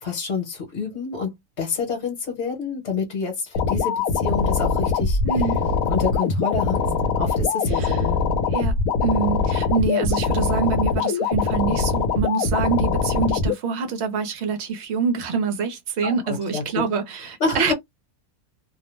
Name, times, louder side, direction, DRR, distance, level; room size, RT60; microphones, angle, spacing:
voice 1, 0.0-5.2 5.9-6.8 7.2-8.2 16.0-16.8 17.4-17.7, left 5 dB, 50° left, 1.1 m, -28 dB
sound 1, 3.5-13.5, left 5 dB, 75° left, 1.0 m, -22 dB
voice 2, 5.2-5.6 7.7-8.0 8.5-8.7 9.0-17.7, right 5 dB, 60° right, 0.8 m, -25 dB
2.6 x 2.0 x 3.0 m
omnidirectional pair, 1.5 m